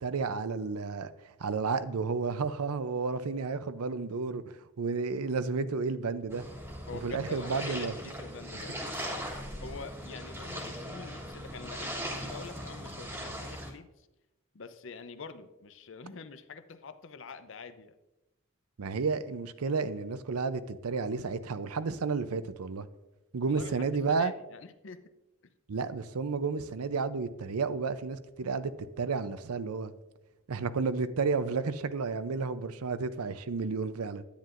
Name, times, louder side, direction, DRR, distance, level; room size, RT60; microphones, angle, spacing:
voice 1, 0.0-1.1 1.4-4.4 4.8-6.5 7.0-7.9 18.8-22.9 23.3-24.3 25.7-29.9 30.5-34.2, right 4 dB, 90° right, 0.6 m, -31 dB
sound 1, 6.3-13.7, equal, 10° right, 1.3 m, -39 dB
voice 2, 6.9-9.3 9.6-14.1 14.5-18.0 23.5-25.0 25.4-25.5, left 4 dB, 60° left, 0.6 m, -46 dB
10.0 x 9.3 x 2.5 m
head